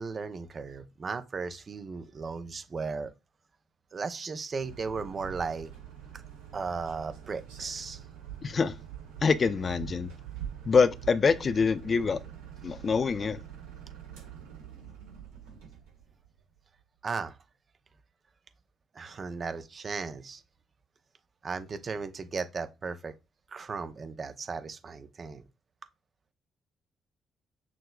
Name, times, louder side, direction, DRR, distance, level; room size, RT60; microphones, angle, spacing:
voice 1, 0.0-3.1 3.9-5.7 6.5-8.0 17.0-17.4 18.9-20.4 21.4-23.1 23.5-25.4, right 4 dB, 45° right, 0.8 m, -36 dB
sound 1, 4.6-16.6, right 9 dB, 80° right, 1.7 m, -45 dB
voice 2, 8.4-8.8 9.2-10.1 10.7-12.2 12.6-13.4, left 5 dB, 45° left, 0.5 m, -25 dB
6.2 x 3.2 x 2.4 m
hypercardioid pair, 40°, 0 cm